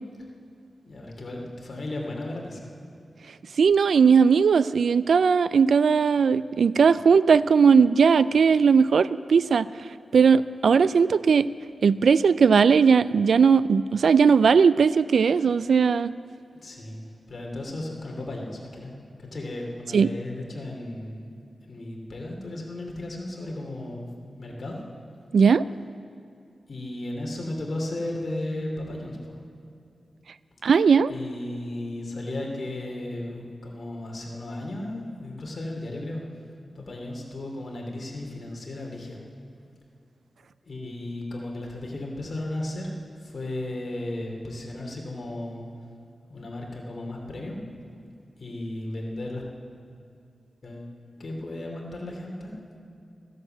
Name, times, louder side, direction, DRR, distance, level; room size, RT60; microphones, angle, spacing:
voice 1, 0.8-2.7 16.6-17.0 17.3-18.9 19.2-24.1 24.4-24.8 26.7-29.3 31.1-36.2 36.7-39.2 40.6-42.9 43.2-45.6 46.3-47.6 48.4-49.4 50.6-50.9 51.2-52.5, left 1 dB, 50° left, -1 dB, 2.8 m, -35 dB
voice 2, 3.6-9.7 10.1-11.5 11.8-16.1 19.9-20.1 25.3-25.6 30.6-31.1, right 6 dB, 80° right, 16 dB, 0.3 m, -18 dB
14.5 x 10.5 x 7.8 m, 2.6 s
wide cardioid pair, 115°, 0 cm